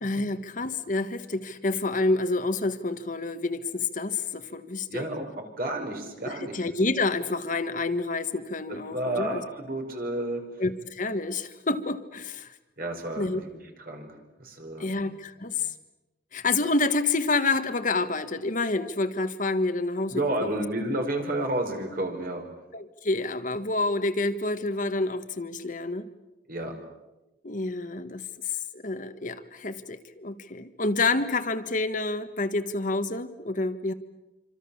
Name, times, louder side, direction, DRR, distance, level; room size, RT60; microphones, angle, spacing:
voice 1, 0.0-5.1 6.2-9.4 10.6-12.5 13.2-13.4 14.8-15.7 16.3-20.6 22.7-26.1 27.4-28.3 28.7-33.9, left 3 dB, 50° left, 9 dB, 1.5 m, -28 dB
voice 2, 4.9-6.6 8.9-10.4 12.8-13.5 13.8-14.1 14.4-15.0 20.1-22.4 26.5-26.7, right 1 dB, 55° right, 3 dB, 5.2 m, -31 dB
27.0 x 26.0 x 7.2 m, 1.0 s
head